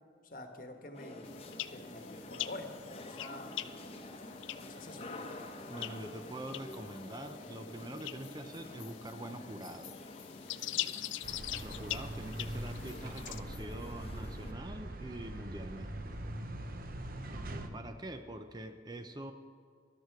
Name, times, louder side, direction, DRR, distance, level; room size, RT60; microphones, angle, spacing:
voice 1, 0.3-1.4 1.7-3.6 4.6-5.2 10.5-10.8 12.4-12.5, left 1 dB, 45° left, 5 dB, 1.2 m, -47 dB
sound 1, 0.9-14.5, left 2 dB, 30° left, 0.9 m, -48 dB
sound 2, 1.2-13.4, left 13 dB, 85° left, 0.4 m, -44 dB
voice 2, 5.7-9.9 11.6-16.2 17.7-19.3, right 1 dB, 20° right, 8 dB, 0.5 m, -44 dB
sound 3, 11.2-17.7, right 1 dB, 50° right, 0.8 m, -42 dB
13.0 x 12.0 x 4.7 m, 2.1 s
head